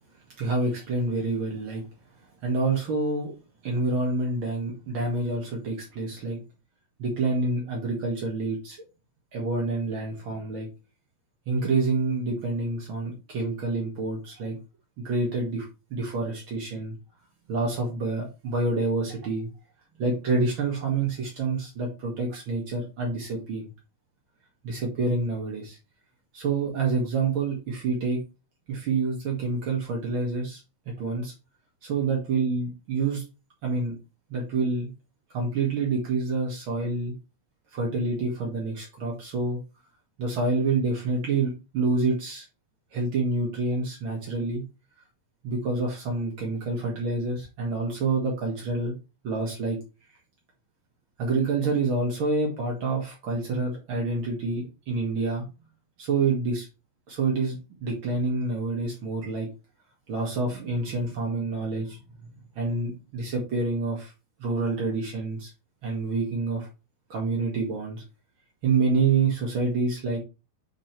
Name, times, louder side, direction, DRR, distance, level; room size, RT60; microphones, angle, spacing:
voice 1, 0.4-1.8 2.4-3.3 3.6-6.4 7.0-8.8 9.3-10.7 11.4-14.6 15.0-16.9 17.5-19.5 20.0-23.7 24.6-25.8 26.3-28.2 28.7-30.6 31.0-31.3 31.8-33.2 33.6-33.9 34.3-34.9 35.3-37.1 37.7-39.6 40.2-42.4 42.9-44.6 45.4-48.9 49.2-49.8 51.2-55.4 56.0-56.6 57.1-59.5 60.1-62.0 62.5-64.1 64.4-65.5 65.8-66.7 67.1-68.0 68.6-70.2, right 3 dB, 65° right, -2 dB, 1.2 m, -27 dB
8.7 x 3.1 x 4.4 m, 0.29 s
omnidirectional pair, 5.0 m